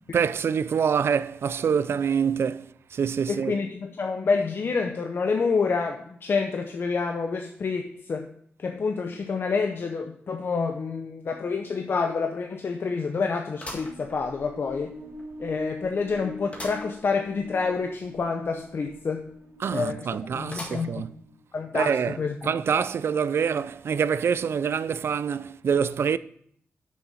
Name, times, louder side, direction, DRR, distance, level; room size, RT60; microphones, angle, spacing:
voice 1, 0.1-3.5 19.6-21.1 21.7-22.2 22.4-26.2, right 7 dB, 70° right, 0.4 m, -25 dB
voice 2, 3.3-8.3 8.6-14.9 15.4-19.3 19.7-20.1 20.3-21.1 21.5-22.5, left 4 dB, 55° left, 0.6 m, -28 dB
sound 1, 11.4-11.5 11.9-12.0 13.6-14.7 15.2-15.3 16.5-16.9 17.3-17.4 17.6-17.7 20.5-21.1 21.7-21.8 22.8-22.9, left 1 dB, 30° left, 1.7 m, -40 dB
sound 2, 13.7-21.3, left 1 dB, 85° right, 1.4 m, -44 dB
6.9 x 6.3 x 5.7 m
wide cardioid pair, 120°, 4 cm